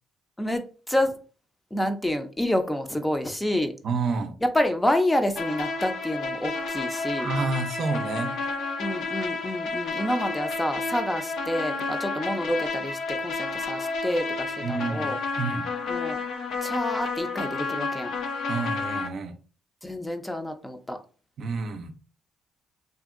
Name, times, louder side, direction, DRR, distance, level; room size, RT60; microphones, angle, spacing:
voice 1, 0.4-1.2 1.7-3.7 4.4-7.3 8.8-15.2 15.9-16.2 16.6-18.1 19.8-21.0, left 1 dB, 10° left, 0.5 m, -28 dB
voice 2, 3.8-4.4 7.2-8.4 14.6-15.7 18.5-19.3 21.4-21.9, right 4 dB, 65° right, 0.4 m, -29 dB
sound 1, 5.4-19.1, left 4 dB, 75° left, 0.7 m, -31 dB
2.8 x 2.6 x 2.4 m
cardioid pair, 85°, 0 cm